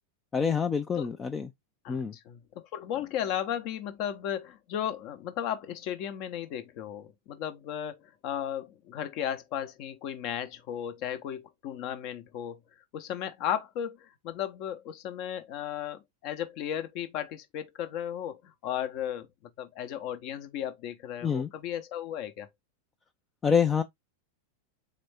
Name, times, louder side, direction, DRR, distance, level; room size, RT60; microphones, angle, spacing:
voice 1, 0.3-1.5 1.9-2.2 21.2-21.5 23.4-23.8, left 6 dB, 20° left, 0.4 m, -26 dB
voice 2, 2.3-12.6 12.9-19.3 19.6-22.5, left 10 dB, 45° left, 0.8 m, -35 dB
4.1 x 3.4 x 3.3 m
figure-of-eight pair, 90°, 0 cm